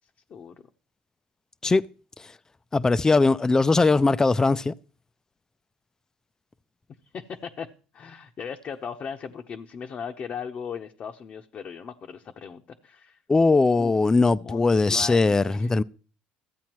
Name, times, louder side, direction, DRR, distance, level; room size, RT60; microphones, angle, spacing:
voice 1, 0.3-0.6 7.1-7.7 7.9-13.2 13.8-13.9 14.3-15.7, left 6 dB, 45° left, 0.8 m, -38 dB
voice 2, 2.7-4.7 13.3-15.8, left 3 dB, 20° left, 0.4 m, -20 dB
14.5 x 8.4 x 3.0 m
supercardioid pair, 90°, 3 cm